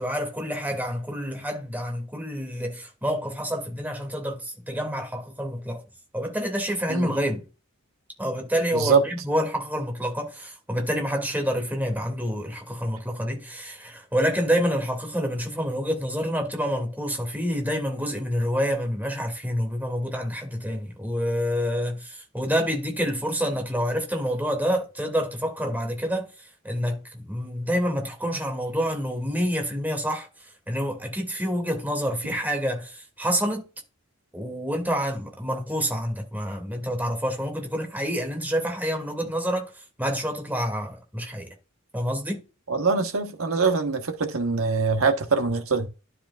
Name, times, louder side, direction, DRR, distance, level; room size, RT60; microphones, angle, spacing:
voice 1, 0.0-5.8 6.1-7.4 8.2-33.6 34.3-41.5 41.9-42.4, equal, 10° right, 2.5 m, -28 dB
voice 2, 42.7-45.9, right 4 dB, 90° right, 1.3 m, -23 dB
12.0 x 5.0 x 2.5 m
head